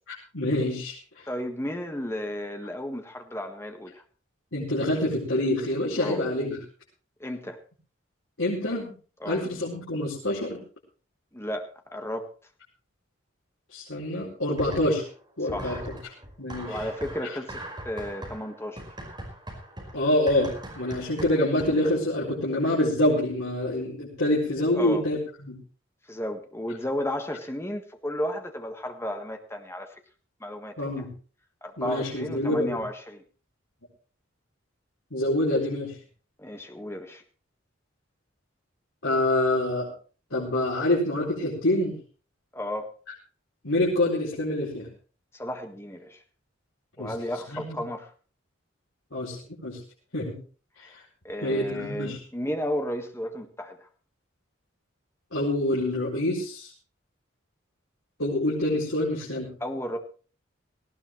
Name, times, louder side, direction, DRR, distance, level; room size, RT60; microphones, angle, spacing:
voice 1, 0.3-1.3 4.5-6.6 8.4-8.9 9.3-10.6 13.7-15.0 15.4-15.9 16.4-16.9 19.9-20.5 20.8-25.6 30.8-31.1 31.8-32.8 35.1-35.9 39.0-39.9 40.3-42.0 43.6-44.9 47.0-47.1 47.5-47.8 49.1-49.8 50.1-50.3 51.4-52.2 55.3-56.7 58.2-59.5, left 1 dB, 90° left, -6 dB, 4.5 m, -26 dB
voice 2, 1.3-4.0 6.0-6.2 7.2-7.6 9.2-9.4 11.3-12.3 15.5-15.9 16.7-18.8 24.7-25.0 26.1-29.9 30.4-31.0 31.6-33.2 36.4-37.2 42.5-42.9 45.3-46.2 47.0-48.1 50.8-50.9 51.2-53.9 59.6-60.0, left 1 dB, 15° left, 5 dB, 1.6 m, -33 dB
sound 1, 14.6-15.2 15.5-21.9, right 1 dB, 20° right, 5.1 m, -40 dB
18.5 x 16.0 x 3.2 m, 0.38 s
head